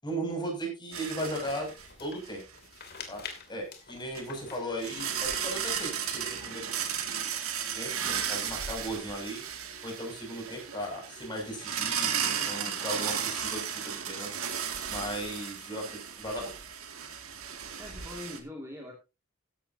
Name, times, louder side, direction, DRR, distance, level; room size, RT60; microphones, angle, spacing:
voice 1, 0.0-1.7 2.0-2.4 3.1-3.2 3.5-6.7 7.8-9.4 9.8-14.4 14.9-16.5, right 1 dB, 20° left, 1 dB, 6.9 m, -37 dB
sound 1, 0.9-1.9 2.3-2.4 4.1-4.2 4.8-18.4, right 8 dB, 85° right, 2.3 m, -34 dB
sound 2, 1.0-6.0, left 6 dB, 50° left, 2.8 m, -47 dB
voice 2, 17.4-18.9, left 1 dB, 15° right, 0 dB, 2.3 m, -43 dB
15.0 x 11.5 x 2.8 m, 0.28 s
head